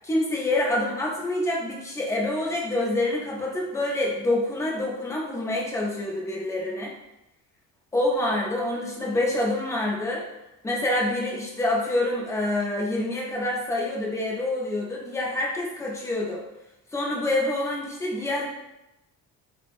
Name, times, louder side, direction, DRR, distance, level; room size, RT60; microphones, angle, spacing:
voice 1, 0.0-6.9 7.9-10.3 10.6-16.4 16.9-18.4, left 1 dB, 10° left, -3 dB, 0.3 m, -26 dB
3.1 x 2.1 x 2.4 m, 0.93 s
cardioid pair, 155°, 35 cm